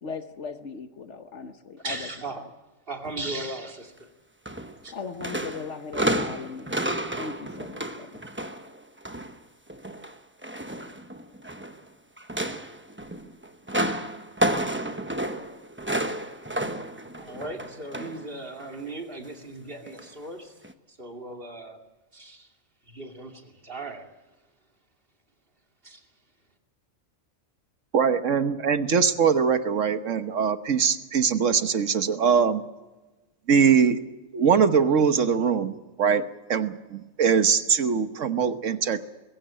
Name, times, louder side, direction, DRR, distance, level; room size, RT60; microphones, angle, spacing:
voice 1, 0.0-2.1 4.9-6.8 7.2-8.2, left 5 dB, 65° left, 8 dB, 1.4 m, -38 dB
voice 2, 1.8-2.4 2.9-4.1 4.8-4.9 17.2-20.5 20.9-21.8 22.1-22.5 22.9-24.1 25.8-26.0, right 2 dB, 45° right, 2 dB, 3.0 m, -37 dB
sound 1, 4.4-4.9 5.2-9.3 9.7-11.8 12.2-18.3 18.6-18.8 19.9-20.0 20.6-20.7, right 1 dB, 10° right, 0.9 m, -31 dB
voice 3, 27.9-32.6 33.5-34.0 34.3-36.2 36.5-39.0, right 6 dB, 75° right, 10 dB, 1.5 m, -22 dB
21.5 x 16.0 x 8.9 m, 1.1 s
omnidirectional pair, 1.3 m